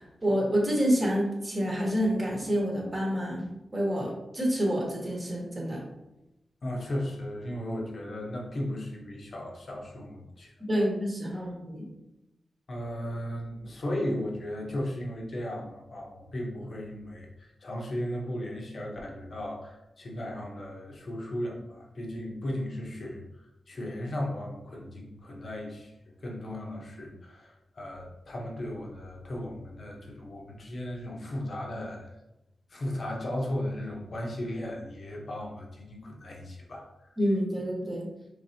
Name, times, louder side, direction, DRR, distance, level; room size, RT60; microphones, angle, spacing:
voice 1, 0.0-3.5 3.7-5.8 10.6-11.8 37.2-38.1, equal, 25° right, -2 dB, 1.2 m, -28 dB
voice 2, 6.6-10.8 11.3-11.5 12.7-23.2 23.7-25.9 26.2-32.1 32.7-37.1, left 1 dB, 45° left, 0 dB, 0.9 m, -36 dB
4.9 x 3.2 x 2.8 m, 0.92 s
wide cardioid pair, 135°, 0 cm